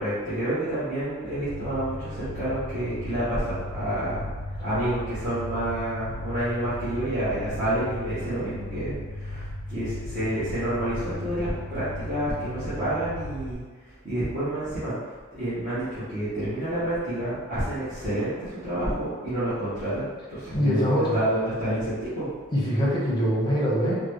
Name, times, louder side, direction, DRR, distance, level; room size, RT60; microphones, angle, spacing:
voice 1, 0.0-4.3 4.6-14.9 15.3-22.3, right 1 dB, 35° right, -14 dB, 1.0 m, -29 dB
sound 1, 1.4-13.5, left 1 dB, 50° left, 0.4 m, -36 dB
voice 2, 20.5-21.2 22.5-24.0, equal, 20° left, -6 dB, 0.8 m, -23 dB
3.8 x 2.2 x 3.1 m, 1.4 s
head